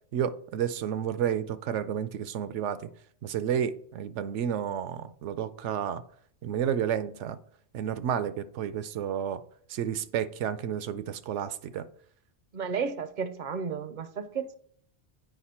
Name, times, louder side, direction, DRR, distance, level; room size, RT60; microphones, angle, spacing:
voice 1, 0.1-2.9 3.2-6.0 6.4-7.4 7.7-9.4 9.7-11.9, right 9 dB, 80° right, 0.9 m, -31 dB
voice 2, 12.5-14.6, right 6 dB, 50° right, 0.6 m, -33 dB
8.2 x 4.9 x 4.2 m
omnidirectional pair, 1.2 m